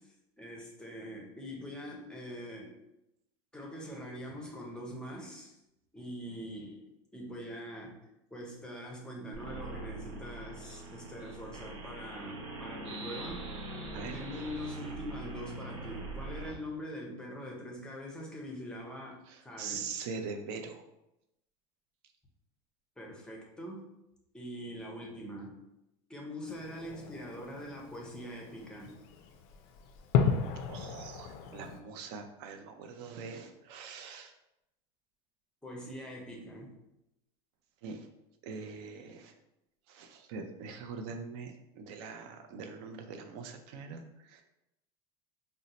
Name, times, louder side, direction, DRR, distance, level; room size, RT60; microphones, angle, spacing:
voice 1, 0.4-2.8 3.5-5.6 5.9-6.8 7.1-8.0 8.3-13.7 14.1-19.2 19.4-20.0 23.0-23.9 24.3-25.6 26.1-29.0 35.6-36.8, equal, 5° left, -1 dB, 0.5 m, -43 dB
sound 1, 9.3-16.5, right 2 dB, 80° right, 0.9 m, -42 dB
voice 2, 19.3-20.8 30.7-34.3 37.8-38.1 38.4-39.3 39.9-44.4, right 5 dB, 60° right, 6 dB, 0.5 m, -43 dB
Fireworks, 26.5-31.8, left 6 dB, 55° left, 0.4 m, -34 dB
2.6 x 2.1 x 4.0 m, 0.87 s
supercardioid pair, 150°, 15 cm